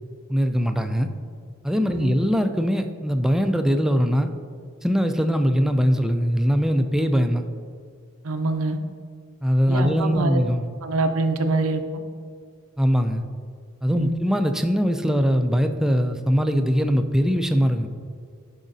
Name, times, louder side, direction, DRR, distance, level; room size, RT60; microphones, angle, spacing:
voice 1, 0.3-1.1 1.6-4.3 4.8-7.5 9.4-10.6 12.8-13.2 13.8-17.9, equal, ahead, 6 dB, 0.3 m, -21 dB
voice 2, 8.2-8.8 9.7-10.4 10.8-12.0 13.9-14.1, right 2 dB, 85° right, 7 dB, 0.6 m, -25 dB
11.0 x 5.0 x 2.7 m, 2.1 s
head